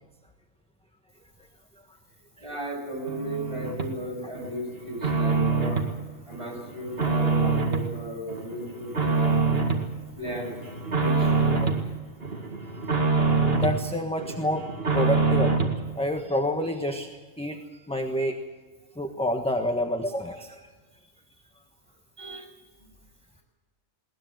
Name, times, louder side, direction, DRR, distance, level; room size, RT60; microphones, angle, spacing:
voice 1, 2.4-9.6 10.2-12.0 22.2-22.5, right 1 dB, 20° right, 0 dB, 7.7 m, -36 dB
sound 1, 3.1-3.9 4.4-5.9 6.3-7.9 8.3-9.9 10.3-11.8 12.2-13.8 14.2-15.8, right 4 dB, 45° right, 2.5 m, -25 dB
voice 2, 13.5-14.7 14.9-17.1 17.4-18.4 18.9-20.7, left 1 dB, 5° left, 4 dB, 1.2 m, -28 dB
21.0 x 19.5 x 7.8 m, 1.4 s
omnidirectional pair, 1.5 m